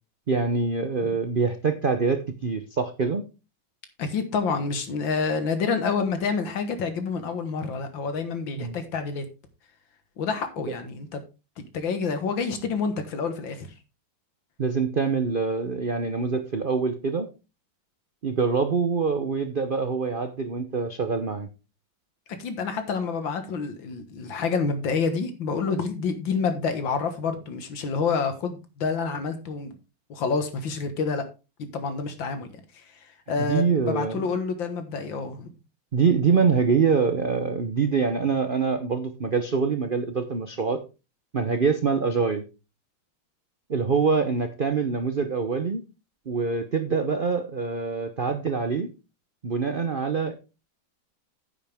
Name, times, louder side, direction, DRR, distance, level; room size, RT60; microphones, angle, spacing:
voice 1, 0.3-3.2 8.6-8.8 10.7-10.8 14.6-17.3 18.2-21.5 33.4-34.3 35.9-40.8 41.3-42.4 43.7-45.8 46.3-48.9 49.4-50.3, right 5 dB, 75° right, 9 dB, 0.4 m, -25 dB
voice 2, 4.0-9.2 10.2-11.2 11.6-13.7 22.4-29.8 30.1-31.3 31.6-32.5 32.7-32.8 33.3-35.5, left 5 dB, 70° left, 9 dB, 2.2 m, -28 dB
9.8 x 8.5 x 3.5 m, 0.30 s
omnidirectional pair, 2.2 m